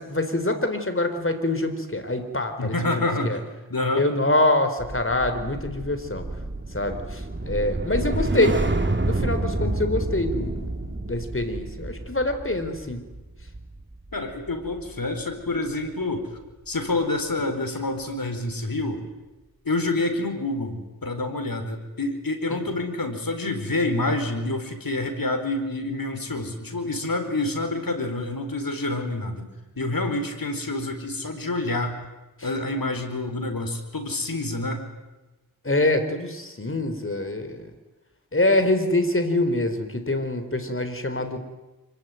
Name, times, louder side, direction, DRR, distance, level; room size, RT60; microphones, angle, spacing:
voice 1, 0.0-3.4 3.9-6.3 6.7-8.6 9.0-13.0 22.5-22.6 32.4-32.5 35.6-37.7 38.3-41.4, left 2 dB, 35° left, 8 dB, 4.2 m, -25 dB
voice 2, 2.6-3.4 3.7-4.0 14.1-16.3 16.7-19.0 19.6-29.5 29.8-32.0 32.4-34.9, left 2 dB, 70° left, 6 dB, 4.6 m, -27 dB
sound 1, 4.8-15.2 15.5-15.8, right 2 dB, 30° right, 2.3 m, -29 dB
26.0 x 24.0 x 9.5 m, 1.1 s
wide cardioid pair, 60°, 37 cm